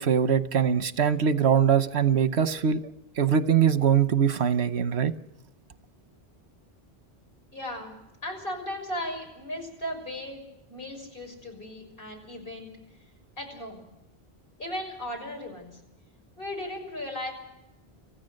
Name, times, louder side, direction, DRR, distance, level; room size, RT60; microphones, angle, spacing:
voice 1, 0.0-2.8 3.2-5.1, right 7 dB, 80° right, 12 dB, 1.2 m, -22 dB
voice 2, 7.5-7.9 8.2-10.4 10.7-12.7 13.4-13.8 14.6-15.8 16.4-17.3, left 1 dB, 60° left, 1 dB, 6.6 m, -36 dB
27.5 x 15.0 x 6.5 m, 0.90 s
omnidirectional pair, 1.1 m